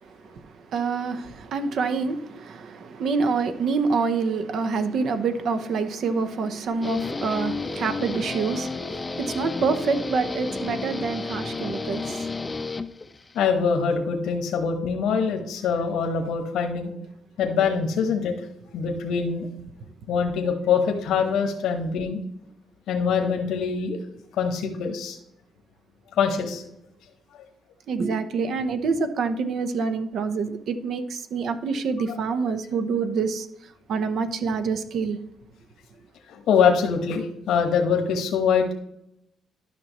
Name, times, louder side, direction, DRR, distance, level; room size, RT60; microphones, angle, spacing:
voice 1, 0.0-12.6 27.9-35.2, right 4 dB, 65° right, 0.8 m, -27 dB
Guitar, 6.8-13.4, left 3 dB, 25° left, 0.5 m, -32 dB
voice 2, 13.3-16.9 17.4-18.3 18.7-19.5 20.1-22.2 22.9-24.0 24.3-25.2 26.2-26.6 32.0-32.1 36.3-38.7, left 6 dB, 80° left, 1.2 m, -24 dB
11.5 x 5.9 x 3.1 m
cardioid pair, 90°, 0 cm